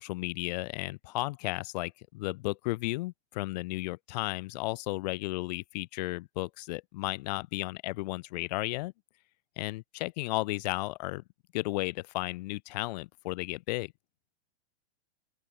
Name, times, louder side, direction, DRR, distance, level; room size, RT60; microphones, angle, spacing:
voice 1, 0.0-8.9 9.6-11.2 11.5-13.9, left 21 dB, 40° left, 1.0 m, -34 dB
open air
supercardioid pair, 160°, 33 cm